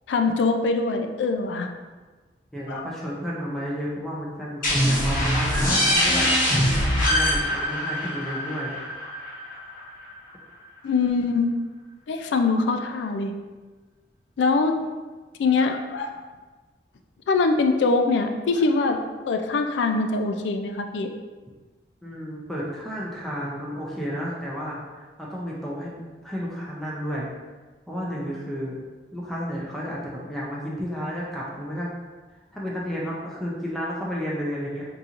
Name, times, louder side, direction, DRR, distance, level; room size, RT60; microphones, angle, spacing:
voice 1, 0.1-1.7 2.7-2.8 10.8-11.5 12.1-13.3 14.4-14.8 15.4-16.1 17.3-19.0 19.3-21.1, left 3 dB, 85° left, 6 dB, 0.3 m, -23 dB
voice 2, 2.5-6.6 7.1-8.7 22.0-27.3 27.9-28.8 29.1-31.9 32.5-34.9, equal, ahead, -5 dB, 0.4 m, -32 dB
sound 1, 4.6-10.1, equal, 50° left, 1.0 m, -23 dB
3.8 x 2.8 x 2.5 m, 1.3 s
head